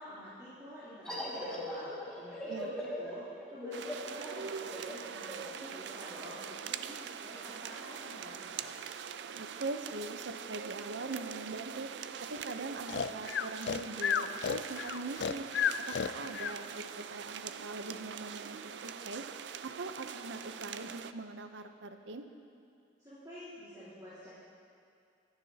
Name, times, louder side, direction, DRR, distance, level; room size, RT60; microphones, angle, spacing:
voice 1, 0.0-3.2 3.5-8.7 23.0-24.3, left 1 dB, 20° right, -15 dB, 3.2 m, -49 dB
sound 1, 1.1-6.4, equal, 5° left, 2.0 m, -41 dB
sound 2, 3.7-21.1, right 7 dB, 70° right, 0.4 m, -43 dB
voice 2, 9.3-11.9 12.3-15.5 15.9-19.2 19.6-22.3, right 3 dB, 90° right, 7 dB, 0.7 m, -42 dB
Breathing, 12.9-16.6, left 7 dB, 70° left, 0.4 m, -32 dB
24.0 x 9.7 x 2.8 m, 2.4 s
head